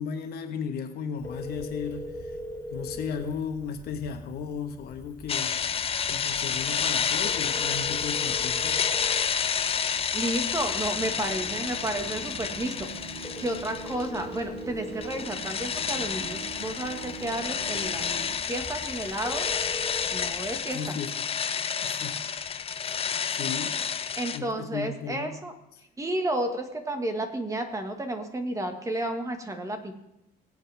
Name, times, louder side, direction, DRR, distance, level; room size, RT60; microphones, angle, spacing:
voice 1, 0.0-2.4 2.7-5.6 6.1-8.8 20.7-21.3 21.8-22.2 22.8-23.0 23.3-23.8 24.3-25.3, left 6 dB, 70° left, 6 dB, 1.6 m, -35 dB
Telephone, 1.2-20.6, left 1 dB, 15° left, 3.6 m, -43 dB
sound 1, 5.3-14.4 14.7-24.4, left 7 dB, 35° left, 0.7 m, -30 dB
voice 2, 10.1-12.9 13.4-18.2 18.5-19.5 20.1-20.8 24.2-25.5 26.0-29.9, right 1 dB, 20° right, 5 dB, 1.8 m, -32 dB
sound 2, 10.9-18.4, right 5 dB, 75° right, 1.1 m, -43 dB
21.5 x 8.1 x 3.6 m, 0.88 s
cardioid pair, 110°, 17 cm